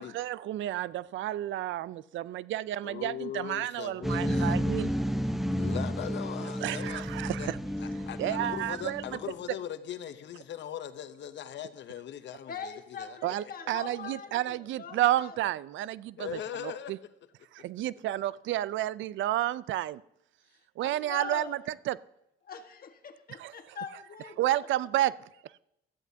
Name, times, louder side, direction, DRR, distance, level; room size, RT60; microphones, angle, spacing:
voice 1, 0.0-4.9 6.6-7.6 8.2-9.2 13.2-17.0 17.5-20.0 20.8-22.0 23.4-23.8 24.4-25.1, right 14 dB, 75° right, 0.4 m, -31 dB
voice 2, 2.8-4.6 5.5-7.0 7.4-7.5 7.8-13.2 16.2-16.9, left 10 dB, 65° left, 0.8 m, -40 dB
sound 1, 4.0-9.3, equal, ahead, 0.7 m, -31 dB
voice 3, 12.5-15.3 20.8-21.5 22.4-24.4, left 6 dB, 50° left, 1.4 m, -42 dB
18.0 x 13.0 x 2.7 m
cardioid pair, 90°, 20 cm